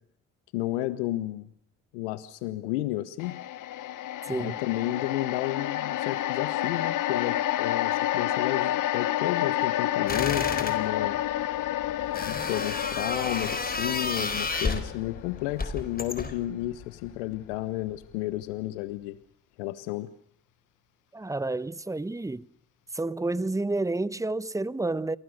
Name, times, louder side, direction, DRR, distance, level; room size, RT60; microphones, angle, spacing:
voice 1, 0.5-1.5 1.9-3.4 4.3-11.2 12.2-19.2 19.6-20.1, left 16 dB, 85° left, 1.1 m, -32 dB
sound 1, 3.2-17.5 17.9-18.1, left 13 dB, 60° left, 1.2 m, -30 dB
sound 2, 10.1-10.8 12.1-14.9 15.6-16.4, left 3 dB, 25° left, 4.4 m, -31 dB
voice 2, 21.1-22.5 22.9-25.2, right 2 dB, 10° right, 1.0 m, -30 dB
29.5 x 23.0 x 6.6 m
hypercardioid pair, 60°, 35 cm